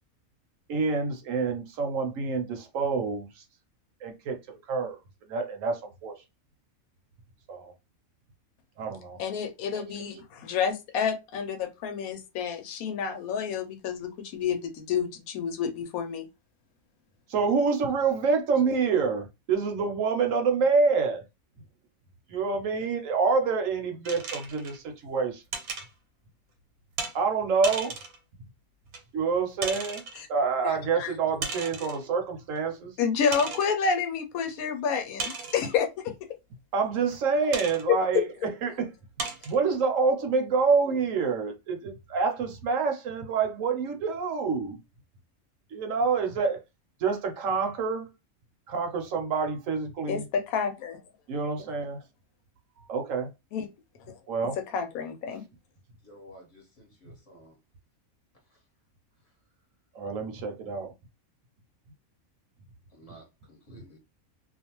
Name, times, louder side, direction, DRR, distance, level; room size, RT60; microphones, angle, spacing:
voice 1, 0.7-3.4 4.0-5.0 5.3-6.1 7.5-7.7 8.8-9.2 9.9-10.0 17.3-21.2 22.3-25.4 27.1-27.9 29.1-30.0 30.3-32.9 36.7-38.9 39.5-44.8 45.7-46.6 47.0-48.1 48.7-50.2 51.3-52.0 52.9-53.3 54.3-54.6 59.9-60.9, right 5 dB, 70° right, 1.0 m, -27 dB
voice 2, 9.2-16.3 30.1-30.3 30.6-31.1 33.0-36.1 37.9-38.3 50.1-51.0 53.5-53.7 54.1-54.2 54.6-55.5, left 6 dB, 80° left, 1.0 m, -29 dB
sound 1, 24.0-24.8 25.5-25.9 27.0-27.2 27.6-28.2 28.9-29.0 29.6-30.2 31.4-32.0 32.6-32.7 33.3-33.7 35.2-35.8 37.5-37.8 38.5-38.6 39.2-39.6, right 4 dB, 90° right, 1.2 m, -35 dB
voice 3, 56.0-57.6 58.5-58.6 62.9-64.0, equal, 30° left, 1.0 m, -52 dB
2.5 x 2.3 x 2.8 m
omnidirectional pair, 1.5 m